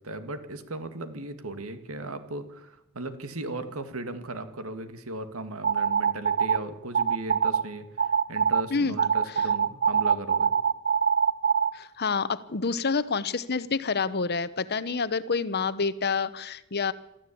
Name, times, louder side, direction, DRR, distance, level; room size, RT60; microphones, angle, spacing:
voice 1, 0.0-10.5, right 2 dB, 90° right, 9 dB, 2.0 m, -37 dB
sound 1, 5.6-6.6 6.9-7.6 8.0-8.6 9.0-11.7, right 7 dB, 50° right, 0.8 m, -23 dB
voice 2, 11.7-16.9, left 4 dB, 50° left, 15 dB, 0.9 m, -28 dB
24.0 x 14.0 x 8.5 m, 0.92 s
head